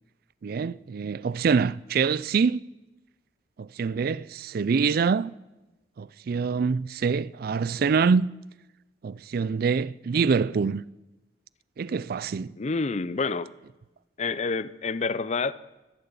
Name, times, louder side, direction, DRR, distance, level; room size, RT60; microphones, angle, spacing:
voice 1, 0.4-2.6 3.6-5.3 6.0-8.3 9.0-10.8 11.8-12.5, right 5 dB, 55° right, 0.4 m, -25 dB
voice 2, 12.6-13.5 14.2-15.5, left 4 dB, 40° left, 0.5 m, -28 dB
13.0 x 12.0 x 6.9 m
head